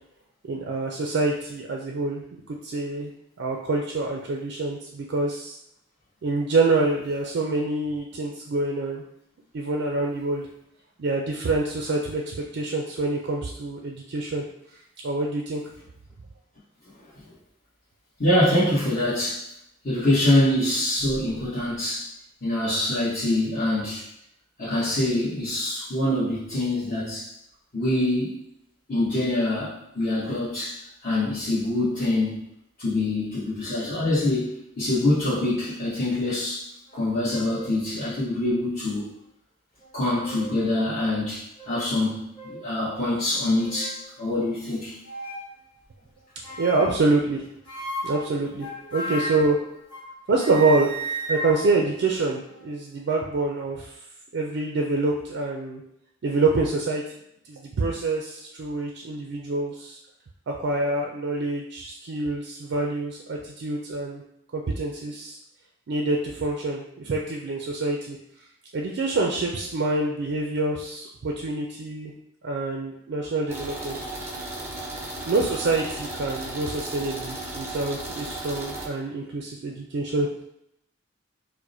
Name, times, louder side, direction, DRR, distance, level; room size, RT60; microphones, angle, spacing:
voice 1, 0.5-3.1 3.4-5.6 6.2-9.0 9.5-10.5 11.0-14.4 15.0-15.6 46.6-47.4 48.0-49.6 50.3-50.9 51.3-53.9 54.3-55.8 56.2-57.0 57.5-60.0 60.5-64.2 64.5-65.4 65.9-68.2 68.7-72.1 72.4-74.0 75.3-80.3, right 3 dB, 65° right, 0 dB, 0.4 m, -26 dB
voice 2, 18.2-19.4 19.8-22.1 22.4-24.0 24.6-27.3 27.7-28.4 28.9-30.8 31.0-32.3 32.8-36.6 36.9-39.0 39.9-44.9, left 1 dB, 50° left, -12 dB, 1.1 m, -25 dB
sound 1, 36.9-37.0 37.3-37.7 38.4-38.5 39.8-40.6 41.0-41.1 41.6-41.8 42.4-42.6 43.3-44.0 45.0-45.5 46.4-47.0 47.7-50.1 50.4-52.7, right 1 dB, 25° left, 1.1 m, -35 dB
sound 2, 73.5-78.9, right 1 dB, 15° right, 0.6 m, -35 dB
4.7 x 2.1 x 2.6 m, 0.78 s
head